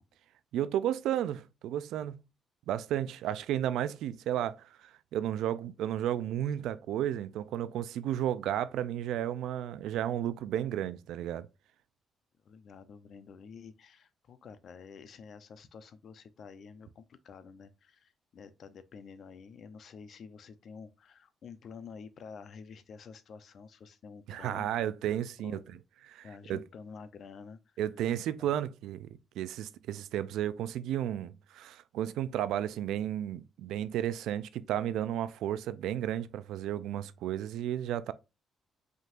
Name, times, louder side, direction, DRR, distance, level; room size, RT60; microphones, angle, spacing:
voice 1, 0.5-2.2 2.7-4.7 5.1-11.5 24.3-25.6 26.1-26.6 27.8-29.1 29.4-38.1, right 11 dB, 85° right, 0.4 m, -33 dB
voice 2, 12.4-24.9 25.4-25.8 26.2-27.8 28.4-28.5, left 5 dB, 60° left, 0.7 m, -49 dB
5.3 x 3.8 x 2.5 m
cardioid pair, 90°, 0 cm